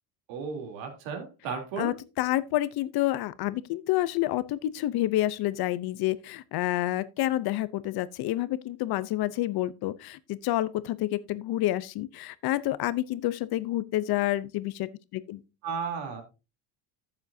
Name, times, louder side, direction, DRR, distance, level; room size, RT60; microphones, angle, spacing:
voice 1, 0.3-1.9 15.6-16.2, right 5 dB, 75° right, 3.4 m, -34 dB
voice 2, 1.8-15.4, left 15 dB, 55° left, 0.8 m, -29 dB
13.5 x 7.4 x 2.7 m
cardioid pair, 145°, 45 cm